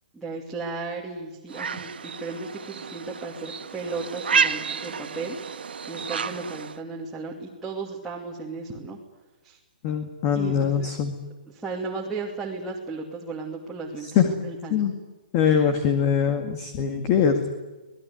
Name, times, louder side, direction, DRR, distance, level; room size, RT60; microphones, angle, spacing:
voice 1, 0.1-5.4 5.9-9.0 9.4-9.6 10.3-11.0 11.5-14.9 15.4-15.7, right 3 dB, 5° right, -5 dB, 2.6 m, -35 dB
sound 1, 1.5-6.8, right 6 dB, 85° right, 2.1 m, -30 dB
voice 2, 9.8-11.1 14.2-14.3 14.7-14.9 15.3-17.5, left 7 dB, 25° left, 6 dB, 2.1 m, -22 dB
26.0 x 20.0 x 9.7 m, 1.1 s
hypercardioid pair, 170°, 5 cm